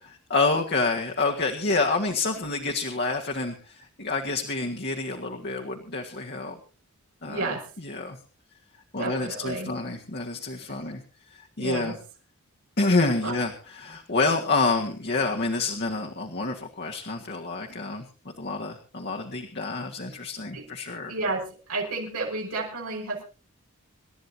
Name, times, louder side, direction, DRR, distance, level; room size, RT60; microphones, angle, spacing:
voice 1, 0.3-6.6 7.2-8.2 8.9-11.0 11.4-12.0 12.8-18.1 18.4-21.1, left 3 dB, 50° left, 1 dB, 1.7 m, -28 dB
voice 2, 7.3-7.6 9.0-9.7 10.7-10.8 11.6-12.0 13.2-13.3 20.5-20.6 21.1-21.4 21.7-23.2, right 3 dB, 85° right, -2 dB, 5.4 m, -31 dB
27.0 x 12.5 x 2.8 m, 0.35 s
head